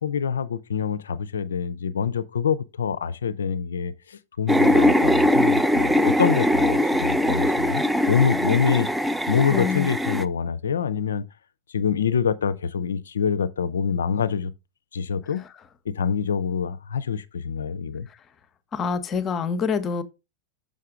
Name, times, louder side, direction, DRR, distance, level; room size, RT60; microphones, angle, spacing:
voice 1, 0.0-8.9 9.3-11.2 11.7-14.5 14.9-15.4 15.9-18.1, left 7 dB, 65° left, 0.4 m, -25 dB
sound 1, 4.5-10.2, left 1 dB, 5° right, 0.3 m, -21 dB
voice 2, 9.5-9.9 18.7-20.0, left 5 dB, 25° left, 0.7 m, -26 dB
6.6 x 5.2 x 3.6 m
figure-of-eight pair, 90°, 0 cm